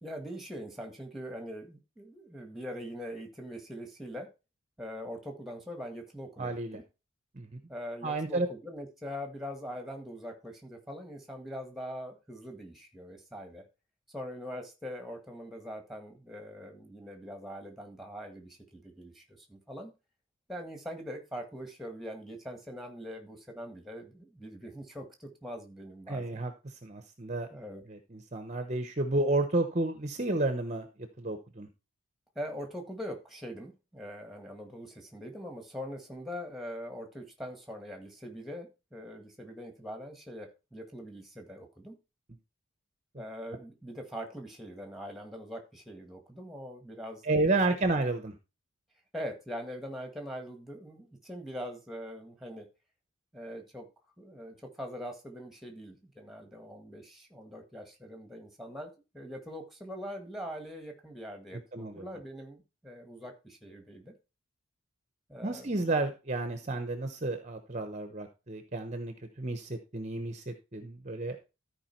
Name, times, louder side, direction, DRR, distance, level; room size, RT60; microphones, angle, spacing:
voice 1, 0.0-4.3 4.8-6.8 7.7-13.6 14.1-19.9 20.5-26.4 27.5-27.8 32.4-42.0 43.2-47.8 49.1-52.7 53.3-53.9 54.2-64.1 65.3-65.9, equal, ahead, 4 dB, 1.8 m, -42 dB
voice 2, 6.4-6.8 7.4-7.6 8.0-8.5 26.1-26.5 26.8-27.5 27.9-30.9 31.2-31.7 47.2-48.3 61.7-62.1 65.4-71.4, right 2 dB, 30° right, 7 dB, 1.0 m, -31 dB
13.5 x 4.9 x 4.5 m, 0.28 s
head